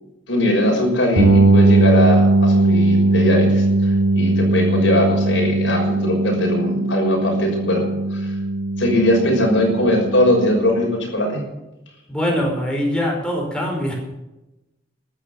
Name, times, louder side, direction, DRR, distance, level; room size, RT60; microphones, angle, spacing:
voice 1, 0.3-7.8 8.1-8.3 8.8-11.4, left 1 dB, 75° left, 1 dB, 6.1 m, -20 dB
sound 1, 1.2-10.9, right 2 dB, 80° right, 5.9 m, -18 dB
voice 2, 12.1-13.9, equal, 5° left, -1 dB, 5.2 m, -22 dB
14.5 x 12.5 x 7.8 m, 0.97 s
head